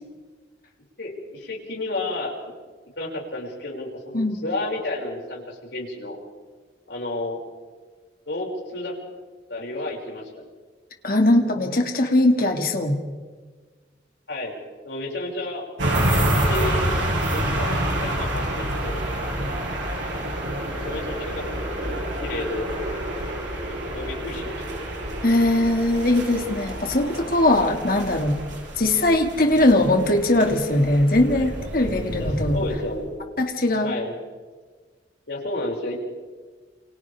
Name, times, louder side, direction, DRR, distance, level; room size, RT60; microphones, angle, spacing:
voice 1, 1.0-2.3 3.0-6.2 6.9-7.4 8.3-9.0 9.5-10.5 14.3-14.5 14.8-15.6 16.3-16.8 17.3-19.0 20.7-22.7 23.9-24.6 27.9-28.1 31.3-31.5 32.2-33.1 33.8-34.1 35.3-35.9, left 2 dB, 70° left, -2 dB, 6.0 m, -31 dB
voice 2, 11.0-13.0 25.2-28.4 28.8-32.6 33.4-33.9, left 1 dB, 50° left, 4 dB, 2.2 m, -20 dB
sound 1, 15.8-33.0, right 1 dB, 80° right, 6.3 m, -28 dB
28.5 x 27.0 x 3.5 m, 1.4 s
head